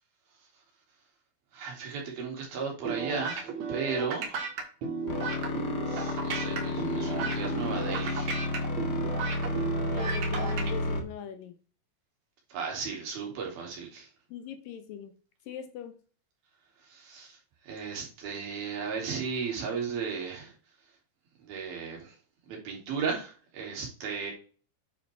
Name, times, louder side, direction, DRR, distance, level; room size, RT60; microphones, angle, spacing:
voice 1, 1.5-4.4 5.9-8.3 12.5-14.1 16.8-17.3 17.6-20.5 21.4-22.1 22.5-24.3, right 5 dB, 80° right, 4.6 m, -35 dB
sound 1, 2.9-10.7, right 5 dB, 55° right, 2.5 m, -34 dB
sound 2, 5.1-11.0, left 2 dB, 45° left, 1.4 m, -31 dB
voice 2, 9.9-11.5 14.3-15.1 15.5-16.0, left 8 dB, 75° left, 2.5 m, -41 dB
9.6 x 5.8 x 3.4 m
omnidirectional pair, 4.3 m